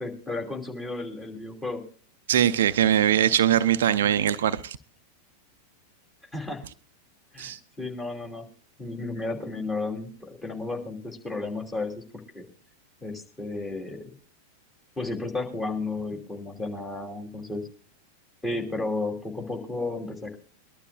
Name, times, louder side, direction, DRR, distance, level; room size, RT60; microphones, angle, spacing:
voice 1, 0.0-1.8 6.3-6.6 7.3-8.5 8.8-12.4 13.0-14.0 15.0-17.6 18.4-20.4, left 2 dB, 15° left, 1 dB, 3.0 m, -33 dB
voice 2, 2.3-4.8 7.4-7.6, right 10 dB, 60° right, 13 dB, 0.6 m, -22 dB
22.5 x 12.0 x 2.4 m, 0.42 s
figure-of-eight pair, 90°, 0 cm